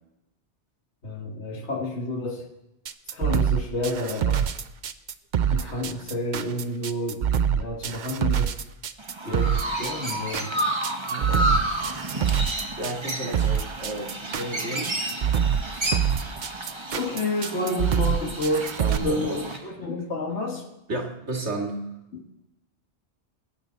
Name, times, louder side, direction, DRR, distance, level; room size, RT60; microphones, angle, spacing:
voice 1, 1.0-2.5 3.1-4.5 5.5-7.2 7.5-8.6 9.2-10.6 11.2-11.6 16.9-18.7 19.0-20.7 22.1-22.2, left 1 dB, 90° left, 0 dB, 2.0 m, -30 dB
sound 1, 2.9-19.0, right 8 dB, 50° right, 0.6 m, -25 dB
Chirp tweet, 9.0-19.6, right 1 dB, 25° right, 1.1 m, -31 dB
voice 2, 12.8-14.9 17.1-17.2 17.9-18.0 18.8-19.4 20.9-21.9, right 2 dB, 85° right, 2 dB, 2.3 m, -32 dB
21.0 x 9.1 x 4.0 m, 0.90 s
omnidirectional pair, 1.1 m